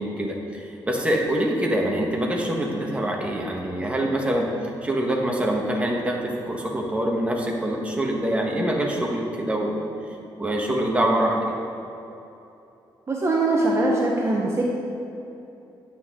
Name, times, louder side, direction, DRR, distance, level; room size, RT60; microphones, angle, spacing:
voice 1, 0.0-4.5 4.8-9.8 10.4-11.4, right 1 dB, 15° right, -1 dB, 1.3 m, -25 dB
voice 2, 13.1-14.6, right 2 dB, 30° right, -2 dB, 1.1 m, -22 dB
9.6 x 8.9 x 3.7 m, 2.8 s
cardioid pair, 115°, 9 cm